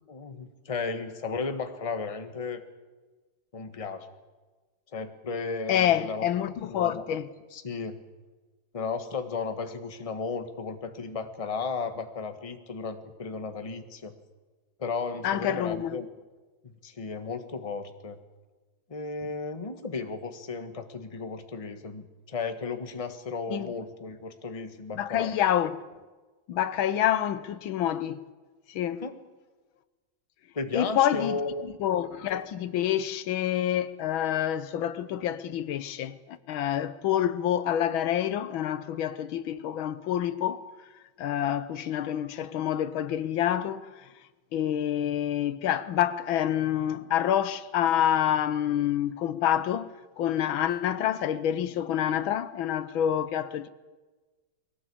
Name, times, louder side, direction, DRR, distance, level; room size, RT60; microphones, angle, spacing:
voice 1, 0.1-2.6 3.5-4.2 4.9-6.3 6.7-7.1 7.5-8.0 8.7-14.1 14.8-16.1 16.6-18.2 18.9-25.3 29.0-29.1 30.5-31.7, left 4 dB, 20° left, 1.2 m, -34 dB
voice 2, 5.7-7.3 15.2-16.0 23.5-23.7 25.0-25.8 26.5-28.3 28.7-29.0 30.7-40.7 41.2-43.9 44.5-49.9 50.2-53.7, left 10 dB, 80° left, 1.6 m, -27 dB
22.0 x 17.5 x 8.5 m
omnidirectional pair, 2.2 m